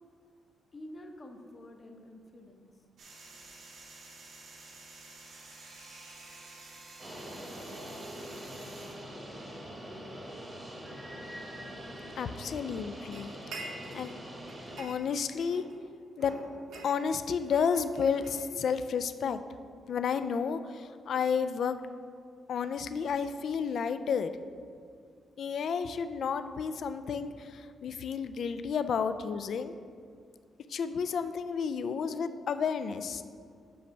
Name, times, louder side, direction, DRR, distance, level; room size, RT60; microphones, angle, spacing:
voice 1, 0.7-2.7, left 1 dB, 25° left, 3 dB, 0.7 m, -48 dB
sound 1, 3.0-8.9, right 2 dB, 65° right, 1.4 m, -50 dB
sound 2, 7.0-14.8, equal, 20° right, 1.0 m, -43 dB
voice 2, 12.2-13.4 13.9-14.1 14.8-15.6 16.2-16.4 16.8-19.4 19.9-21.8 22.5-24.3 25.4-29.7 30.7-33.2, left 6 dB, 55° left, 11 dB, 0.3 m, -31 dB
sound 3, 13.1-14.2 14.5-15.8 16.2-18.9, right 2 dB, 85° right, 1.0 m, -47 dB
7.7 x 3.3 x 6.4 m, 2.2 s
cardioid pair, 150°, 0 cm